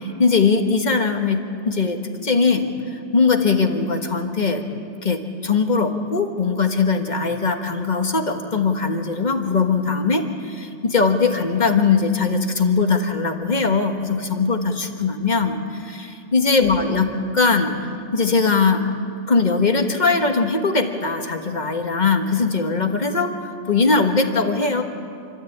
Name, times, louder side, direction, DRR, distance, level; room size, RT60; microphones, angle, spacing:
voice 1, 0.0-4.6 5.0-17.7 18.1-18.8 19.3-24.8, left 4 dB, 35° left, 4 dB, 1.6 m, -20 dB
29.0 x 13.0 x 8.7 m, 2.5 s
omnidirectional pair, 1.3 m